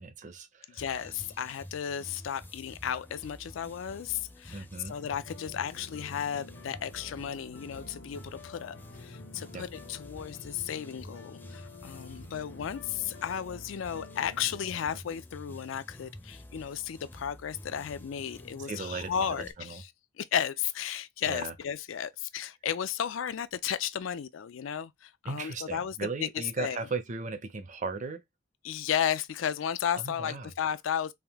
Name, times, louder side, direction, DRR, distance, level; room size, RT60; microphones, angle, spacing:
voice 1, 0.0-0.8 4.5-4.9 9.5-9.6 18.6-19.8 21.3-21.5 25.2-28.2 30.0-30.5, right 4 dB, 40° right, 0.6 m, -37 dB
voice 2, 0.7-19.9 20.2-26.8 28.6-31.1, left 8 dB, 90° left, 0.4 m, -34 dB
sound 1, 0.8-19.5, left 1 dB, 10° left, 0.4 m, -49 dB
sound 2, 5.2-15.0, left 3 dB, 70° left, 0.8 m, -49 dB
3.5 x 2.6 x 3.5 m
head